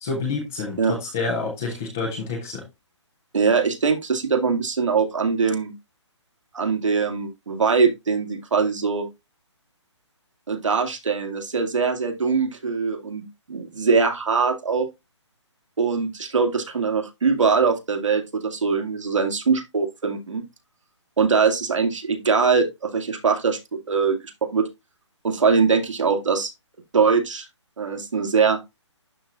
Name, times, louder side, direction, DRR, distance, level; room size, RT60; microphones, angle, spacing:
voice 1, 0.0-2.6, left 3 dB, 5° left, 0.3 m, -28 dB
voice 2, 3.3-5.7 6.5-9.1 10.5-14.9 15.8-20.4 21.2-24.7 25.2-26.5 26.9-27.5 27.8-28.6, right 5 dB, 80° right, 2.1 m, -22 dB
11.5 x 4.0 x 2.4 m
hypercardioid pair, 170°, 16 cm